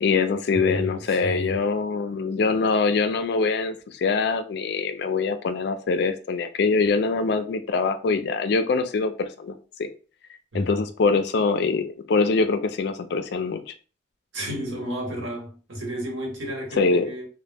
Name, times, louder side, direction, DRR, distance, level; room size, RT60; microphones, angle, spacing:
voice 1, 0.0-9.9 10.5-13.7 16.8-17.1, left 4 dB, 60° left, 0.3 m, -24 dB
voice 2, 0.5-1.6 10.5-10.7 14.3-17.3, equal, 85° right, 1.1 m, -32 dB
2.1 x 2.0 x 3.3 m
head